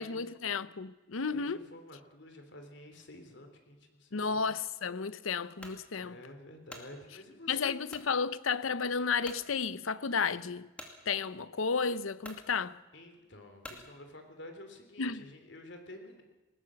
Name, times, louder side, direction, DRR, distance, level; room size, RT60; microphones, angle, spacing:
voice 1, 0.0-1.7 4.1-6.2 7.5-10.7 11.1-12.8 15.0-15.3, left 5 dB, 90° left, 0.8 m, -32 dB
voice 2, 1.3-4.5 5.9-7.7 12.9-16.2, left 1 dB, 60° left, 3.4 m, -50 dB
sound 1, 5.6-5.8 6.4-6.9 7.9-8.1 8.7-8.8 9.2-9.5 10.8-11.0 11.8-11.9 12.2-12.5 13.6-13.9, left 1 dB, 5° left, 2.3 m, -47 dB
20.0 x 19.0 x 7.7 m
head